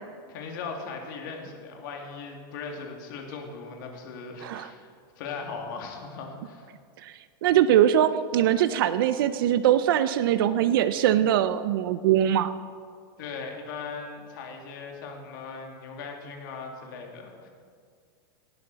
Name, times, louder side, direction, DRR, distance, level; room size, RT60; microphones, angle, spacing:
voice 1, 0.3-6.7 13.2-17.5, left 4 dB, 60° left, 2 dB, 2.3 m, -39 dB
voice 2, 7.4-12.5, right 11 dB, 70° right, 12 dB, 0.5 m, -22 dB
18.0 x 9.1 x 4.0 m, 2.1 s
supercardioid pair, 165°, 12 cm